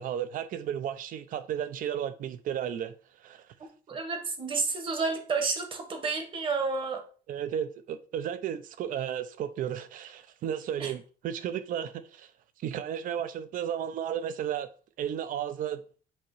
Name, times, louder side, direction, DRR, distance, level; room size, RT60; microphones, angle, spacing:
voice 1, 0.0-2.9 3.2-3.5 7.3-12.3 12.6-14.7 15.0-15.8, right 9 dB, 60° right, 0.6 m, -33 dB
voice 2, 3.9-7.0 10.8-10.9, right 4 dB, 30° right, 1.1 m, -30 dB
7.4 x 3.0 x 4.6 m
cardioid pair, 180°, 16 cm